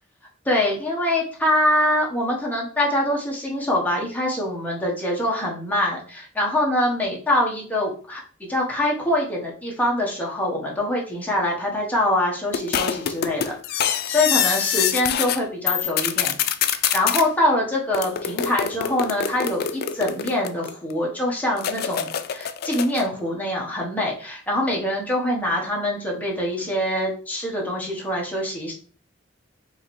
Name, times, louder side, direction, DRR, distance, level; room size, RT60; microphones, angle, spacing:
voice 1, 0.4-13.8 14.1-16.3 16.9-28.7, left 1 dB, 10° left, -3 dB, 1.1 m, -24 dB
sound 1, 12.5-15.4 15.7-17.2 17.9-20.9 21.6-23.1, left 9 dB, 55° left, 0.3 m, -25 dB
4.7 x 2.9 x 3.1 m, 0.42 s
head